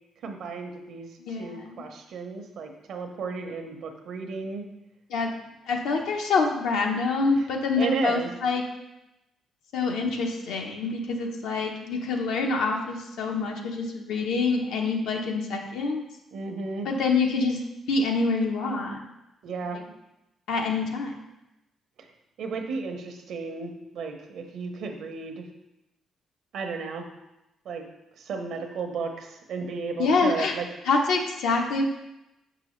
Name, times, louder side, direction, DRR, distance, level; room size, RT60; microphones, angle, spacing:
voice 1, 0.2-4.6 7.8-8.3 16.3-16.9 19.4-19.8 22.4-25.5 26.5-27.1 27.6-27.8 28.2-30.7, right 4 dB, 75° right, 4 dB, 0.9 m, -33 dB
voice 2, 1.2-1.8 5.1-5.3 5.7-8.6 9.7-16.0 16.8-17.6 17.9-19.1 20.5-21.1 30.0-30.6 30.8-31.8, left 4 dB, 85° left, 2 dB, 0.9 m, -26 dB
5.9 x 5.9 x 3.1 m, 0.92 s
cardioid pair, 90°, 0 cm